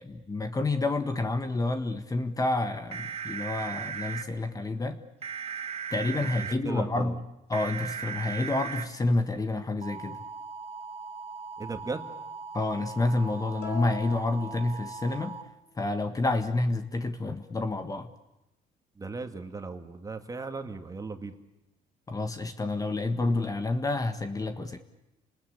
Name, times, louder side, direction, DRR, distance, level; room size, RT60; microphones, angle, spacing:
voice 1, 0.0-5.0 5.9-7.2 7.5-10.2 12.5-15.4 15.8-18.1 22.1-24.8, left 2 dB, 20° left, 8 dB, 1.4 m, -29 dB
sound 1, 2.9-4.2 5.2-6.5 7.5-8.8 9.8-15.4, right 6 dB, 35° right, 1.6 m, -38 dB
voice 2, 6.2-7.1 11.6-12.0 19.0-21.3, right 3 dB, 20° right, 6 dB, 2.1 m, -37 dB
sound 2, 13.6-15.4, left 3 dB, 75° left, 4.7 m, -42 dB
30.0 x 20.0 x 8.6 m, 0.93 s
cardioid pair, 110°, 17 cm